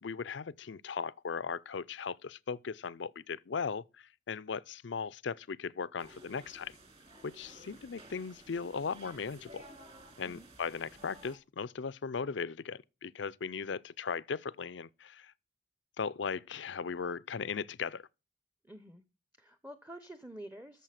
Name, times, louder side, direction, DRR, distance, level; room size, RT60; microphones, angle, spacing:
voice 1, 0.0-6.7 7.2-9.6 10.2-15.3 16.0-18.1, left 5 dB, 75° left, 0.5 m, -38 dB
sound 1, 6.0-11.3, right 1 dB, 30° right, 2.8 m, -54 dB
voice 2, 18.6-19.0 19.4-20.8, right 1 dB, 10° right, 0.8 m, -48 dB
14.0 x 7.0 x 5.8 m
head